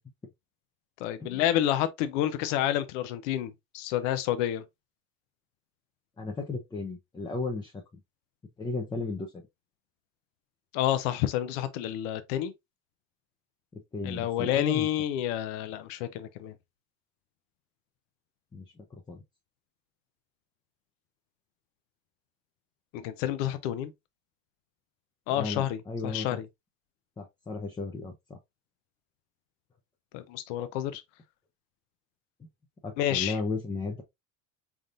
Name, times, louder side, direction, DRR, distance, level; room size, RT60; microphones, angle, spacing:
voice 1, 1.0-4.6 10.7-12.5 14.0-16.5 22.9-23.9 25.3-26.5 30.1-31.0 33.0-33.4, left 12 dB, 75° left, 0.7 m, -29 dB
voice 2, 6.2-8.0 8.6-9.3 13.7-14.9 18.5-19.2 25.3-26.3 27.2-28.4 32.4-32.5 32.8-34.0, left 3 dB, 10° left, 0.6 m, -35 dB
3.9 x 3.5 x 2.5 m
supercardioid pair, 125°, 38 cm